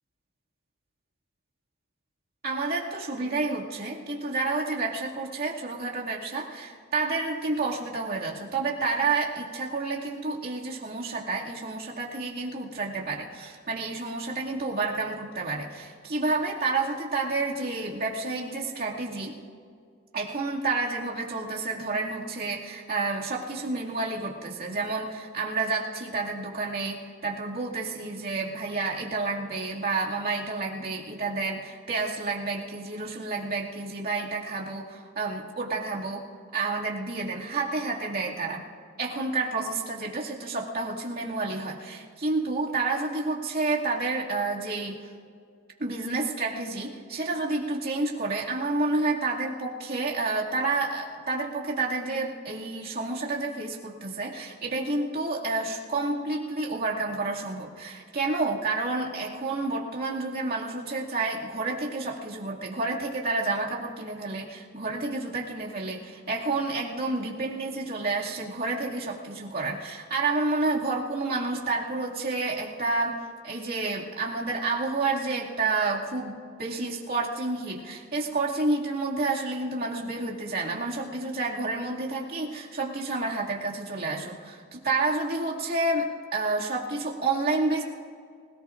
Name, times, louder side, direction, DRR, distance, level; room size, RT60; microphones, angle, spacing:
voice 1, 2.4-19.3 20.1-36.2 36.5-38.6 39.0-45.0 45.8-87.8, right 3 dB, 45° right, -3 dB, 2.4 m, -30 dB
26.0 x 18.0 x 2.6 m, 2.2 s
head